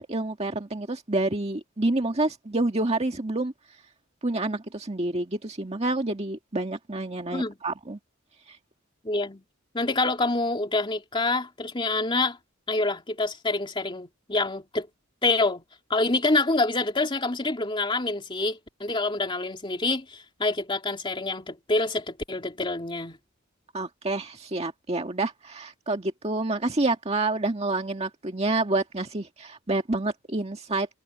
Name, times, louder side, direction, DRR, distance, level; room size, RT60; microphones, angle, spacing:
voice 1, 0.0-3.5 4.2-8.0 8.5-8.6 23.7-30.9, right 2 dB, 30° right, 1.8 m, -28 dB
voice 2, 9.0-9.4 9.7-12.4 12.7-14.9 15.2-15.6 15.9-23.2, left 2 dB, 25° left, 2.8 m, -26 dB
head